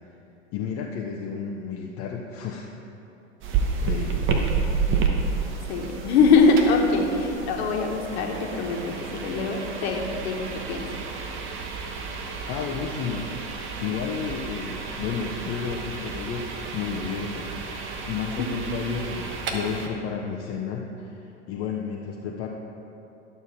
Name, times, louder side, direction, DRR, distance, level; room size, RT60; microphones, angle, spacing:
voice 1, 0.5-2.7 3.6-4.4 12.5-22.5, left 6 dB, 35° left, -1 dB, 0.8 m, -32 dB
sound 1, 3.4-19.9, right 5 dB, 30° right, 1.1 m, -31 dB
voice 2, 5.7-10.9 18.4-18.5, left 4 dB, 55° left, 2 dB, 1.5 m, -23 dB
12.0 x 6.9 x 4.4 m, 3.0 s
figure-of-eight pair, 90°, 38 cm